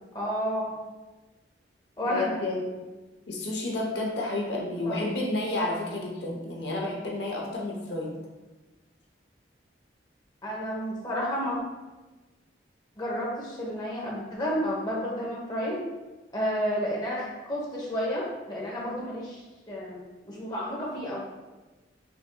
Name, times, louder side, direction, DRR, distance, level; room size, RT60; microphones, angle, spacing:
voice 1, 0.1-0.7 2.0-2.3 4.9-5.0 10.4-11.6 13.0-15.8 16.3-20.0 20.2-21.2, equal, 20° left, -5 dB, 0.9 m, -31 dB
voice 2, 2.0-2.8 3.3-8.1, left 2 dB, 70° left, -1 dB, 0.7 m, -31 dB
5.6 x 3.5 x 2.2 m, 1.2 s
head